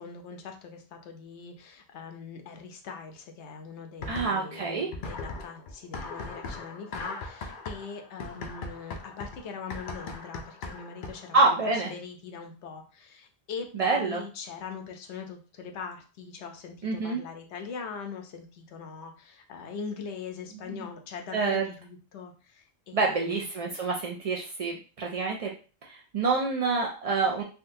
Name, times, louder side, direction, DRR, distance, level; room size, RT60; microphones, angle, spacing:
voice 1, 0.0-11.6 11.9-23.4, left 5 dB, 75° left, 4 dB, 0.9 m, -41 dB
sound 1, 4.0-4.6 4.9-11.4, left 3 dB, 60° left, 0.6 m, -39 dB
voice 2, 4.1-4.9 11.3-11.9 13.7-14.2 16.8-17.2 20.7-20.9 21.3-21.6 22.9-25.5 25.8-27.4, right 3 dB, 60° right, -1 dB, 0.3 m, -27 dB
3.6 x 2.3 x 2.6 m, 0.35 s
omnidirectional pair, 1.2 m